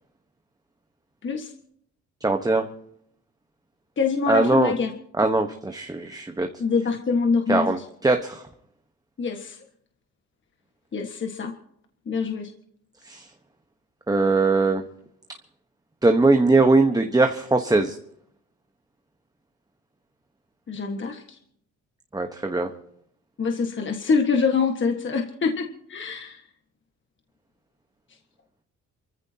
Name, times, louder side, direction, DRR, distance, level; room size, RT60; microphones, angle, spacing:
voice 1, 1.2-1.5 4.0-4.9 6.6-7.8 9.2-9.6 10.9-11.5 12.0-12.5 20.7-21.4 23.4-26.4, left 5 dB, 40° left, 3 dB, 1.6 m, -25 dB
voice 2, 2.2-2.7 4.3-4.7 5.2-6.5 7.5-8.4 13.0-13.3 14.1-14.8 16.0-18.0 22.1-22.7, right 3 dB, 10° right, 5 dB, 1.2 m, -21 dB
28.5 x 15.0 x 2.9 m, 0.69 s
cardioid pair, 90°, 30 cm